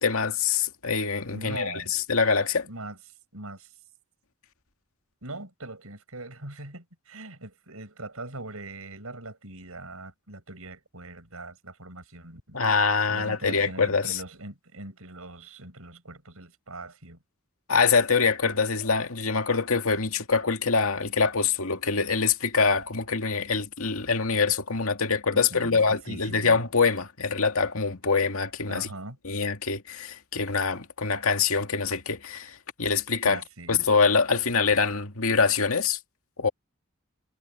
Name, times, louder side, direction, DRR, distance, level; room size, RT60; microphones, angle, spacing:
voice 1, 0.0-2.7 12.5-14.2 17.7-28.9 29.2-33.4 33.7-36.0 36.4-36.5, left 5 dB, 85° left, 2.1 m, -24 dB
voice 2, 1.3-1.9 2.6-3.0 3.3-3.7 5.2-12.6 13.1-17.2 25.3-26.6 28.7-29.2 33.2-33.9, right 2 dB, 90° right, 7.8 m, -41 dB
head